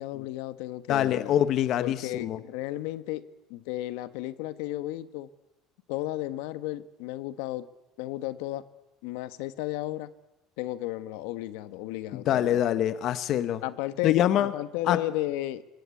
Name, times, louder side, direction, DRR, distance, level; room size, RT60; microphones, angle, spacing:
voice 1, 0.0-1.3 1.8-3.2 3.5-5.3 5.9-7.7 8.0-8.6 9.0-10.1 10.6-12.6 13.6-15.6, left 15 dB, 80° left, 13 dB, 1.3 m, -34 dB
voice 2, 0.9-2.4 12.1-13.6 14.0-14.5 14.9-15.0, left 11 dB, 45° left, 13 dB, 1.0 m, -25 dB
26.5 x 22.0 x 8.4 m, 0.96 s
cardioid pair, 165°, 0 cm